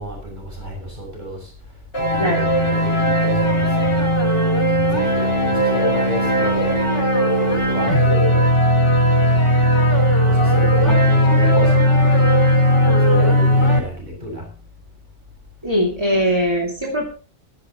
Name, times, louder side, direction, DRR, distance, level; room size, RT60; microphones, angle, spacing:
voice 1, 0.0-1.5 2.1-4.3 4.6-6.9 7.4-8.7 10.2-14.5, equal, 40° right, 6.9 m, -31 dB
sound 1, 1.9-13.8, equal, 80° left, 5.1 m, -17 dB
voice 2, 15.6-17.1, equal, 25° right, 2.5 m, -20 dB
16.5 x 14.5 x 3.0 m
omnidirectional pair, 1.2 m